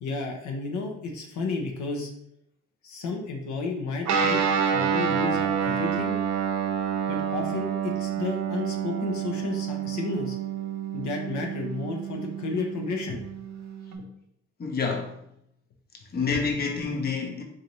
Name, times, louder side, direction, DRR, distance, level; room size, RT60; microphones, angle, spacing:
voice 1, 0.0-2.1 2.8-4.4 4.7-6.2 7.1-10.4 10.9-13.2, left 3 dB, 70° left, 0.7 m, -32 dB
Guitar, 4.0-14.0, right 7 dB, 65° right, 0.6 m, -28 dB
voice 2, 14.6-15.1 16.1-17.4, left 5 dB, 30° left, 0.7 m, -28 dB
4.0 x 2.6 x 3.1 m
cardioid pair, 90°, 30 cm